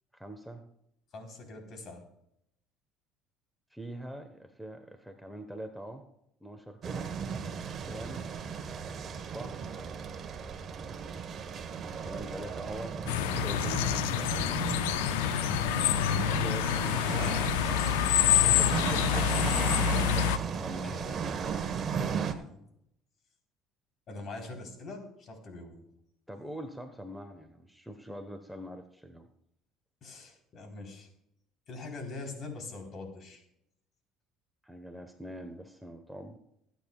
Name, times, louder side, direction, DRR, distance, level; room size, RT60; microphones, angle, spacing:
voice 1, 0.1-0.6 3.7-6.0 6.4-7.1 7.8-8.3 8.8-9.0 9.3-9.6 12.0-14.6 16.3-17.5 18.4-19.3 20.4-21.0 26.3-29.3 34.6-36.4, right 1 dB, ahead, 6 dB, 1.2 m, -43 dB
voice 2, 1.1-2.0 20.7-21.2 22.1-22.6 24.1-25.9 30.0-31.1 31.7-33.4, left 3 dB, 50° left, 3 dB, 4.0 m, -43 dB
sound 1, 6.8-22.3, right 6 dB, 45° right, 1.3 m, -35 dB
sound 2, 13.1-20.4, left 11 dB, 85° left, 0.5 m, -27 dB
24.5 x 9.1 x 2.4 m, 0.77 s
hypercardioid pair, 75°, 0 cm